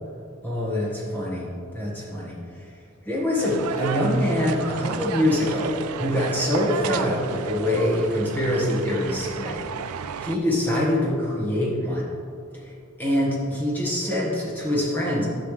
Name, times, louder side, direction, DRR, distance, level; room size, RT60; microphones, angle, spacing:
voice 1, 0.4-2.7 3.0-12.1 12.6-12.7 13.0-15.3, left 1 dB, 10° left, -6 dB, 1.5 m, -25 dB
sound 1, 3.4-10.4, right 6 dB, 85° right, 0.4 m, -33 dB
10.5 x 7.0 x 3.3 m, 2.4 s
head